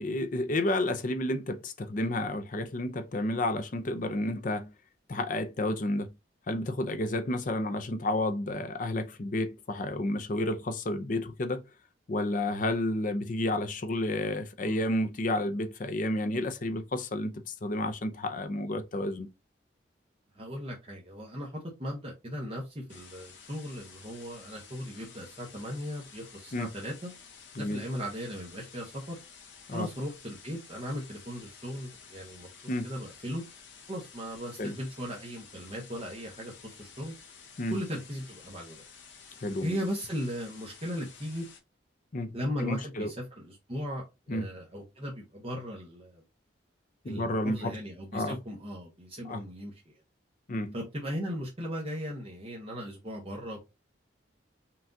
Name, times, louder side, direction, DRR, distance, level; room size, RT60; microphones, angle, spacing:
voice 1, 0.0-4.7 5.1-6.1 6.5-11.6 12.1-19.3 26.5-26.7 27.5-27.8 29.7-29.9 32.7-32.9 34.6-34.8 37.6-37.8 39.4-39.8 42.1-42.3 42.6-43.1 44.3-44.5 47.0-47.8 48.1-48.4 49.2-49.4 50.5-50.7, left 1 dB, 45° left, 0.5 m, -31 dB
voice 2, 20.3-27.1 27.6-29.2 29.7-32.5 32.8-33.4 33.9-37.1 37.7-38.8 39.6-41.4 42.3-42.9 43.4-46.2 47.0-49.9 50.7-53.6, equal, 30° right, 0.9 m, -37 dB
sound 1, 22.9-41.6, left 6 dB, 75° left, 1.0 m, -52 dB
5.7 x 2.4 x 2.6 m
head